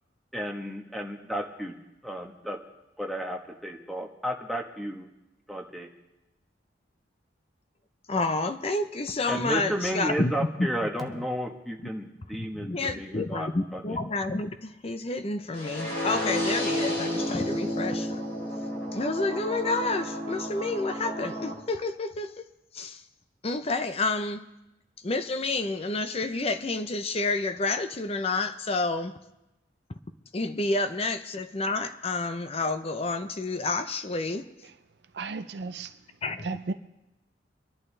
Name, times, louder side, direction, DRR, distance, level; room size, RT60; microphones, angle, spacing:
voice 1, 0.3-1.7 2.0-2.6 3.0-5.1 5.5-5.9 9.3-14.0, equal, ahead, 1.2 m, -33 dB
voice 2, 8.1-10.5 10.8-11.2 12.4-18.2 18.9-22.3 22.7-23.0 23.4-24.4 25.0-29.1 30.3-34.5 36.2-36.5, left 3 dB, 35° left, 0.6 m, -29 dB
sound 1, 15.5-21.5, equal, 75° left, 3.5 m, -31 dB
voice 3, 35.1-36.0 36.4-36.7, right 4 dB, 65° right, 0.5 m, -34 dB
24.5 x 11.0 x 3.3 m
head